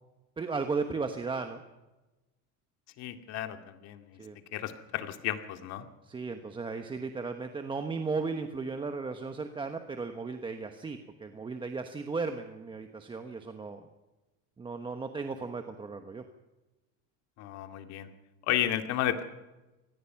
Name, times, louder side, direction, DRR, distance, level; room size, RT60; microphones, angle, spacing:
voice 1, 0.4-1.6 4.2-4.4 6.0-13.9 14.6-16.2, right 4 dB, 15° right, 6 dB, 1.1 m, -35 dB
voice 2, 3.0-4.2 4.5-5.9 17.4-18.1 18.5-19.2, left 12 dB, 50° left, 7 dB, 2.2 m, -33 dB
24.5 x 19.0 x 5.9 m, 1.1 s
cardioid pair, 150°, 35 cm